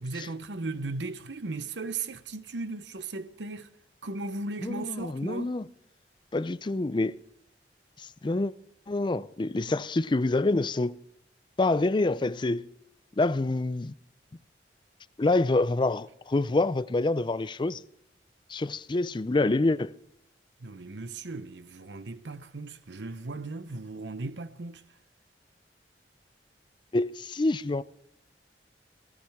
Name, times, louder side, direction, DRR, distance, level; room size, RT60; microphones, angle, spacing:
voice 1, 0.0-3.7 4.0-5.5 20.6-24.8, right 3 dB, 85° right, 0.9 m, -36 dB
voice 2, 4.6-5.6 6.3-7.2 8.0-8.5 8.9-11.0 11.6-12.7 13.2-13.9 15.2-17.8 18.5-19.9 26.9-27.8, left 2 dB, 25° left, 0.4 m, -27 dB
16.5 x 14.5 x 3.6 m
head